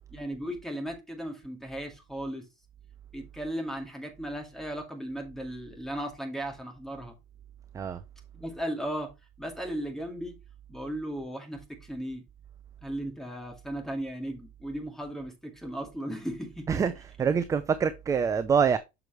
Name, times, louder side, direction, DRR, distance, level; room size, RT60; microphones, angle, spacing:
voice 1, 0.1-2.5 3.1-7.1 8.3-9.1 9.4-10.4 10.7-12.2 12.8-16.8, right 1 dB, ahead, 2.1 m, -36 dB
voice 2, 16.7-18.8, right 6 dB, 15° right, 0.5 m, -25 dB
6.9 x 6.2 x 3.0 m
cardioid pair, 140°, 18 cm